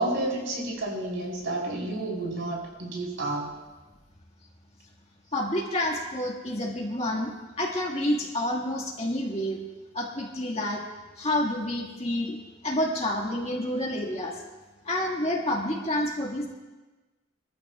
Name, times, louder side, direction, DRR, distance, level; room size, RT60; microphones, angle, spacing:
voice 1, 0.0-3.5, right 2 dB, 70° right, -3 dB, 4.2 m, -30 dB
voice 2, 5.3-9.6 9.9-10.8 11.2-12.4 12.6-14.3 14.9-16.5, left 1 dB, 30° left, -1 dB, 1.9 m, -28 dB
23.0 x 14.0 x 2.4 m, 1.2 s
head